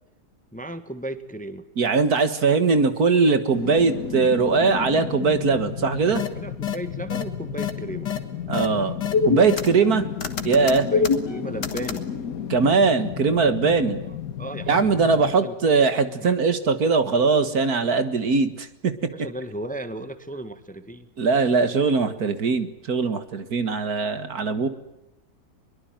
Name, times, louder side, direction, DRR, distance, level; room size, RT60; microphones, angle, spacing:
voice 1, 0.5-1.7 6.3-8.1 10.8-12.1 13.9-14.9 15.4-15.8 16.2-16.4 19.1-21.1, right 1 dB, 5° left, 11 dB, 1.3 m, -35 dB
voice 2, 1.8-6.2 8.5-9.0 9.3-10.0 10.4-10.9 12.5-14.0 14.7-19.1 21.2-24.7, right 4 dB, 60° right, 11 dB, 2.1 m, -21 dB
sound 1, 3.5-16.5 16.9-17.0, left 8 dB, 60° left, 1.7 m, -33 dB
sound 2, 6.1-6.3 6.6-6.8 7.1-7.2 7.6-7.7 8.1-8.2 8.5-8.7 9.0-9.9 10.2-12.0, left 5 dB, 85° left, 2.5 m, -24 dB
22.5 x 22.5 x 9.0 m, 0.91 s
omnidirectional pair, 1.8 m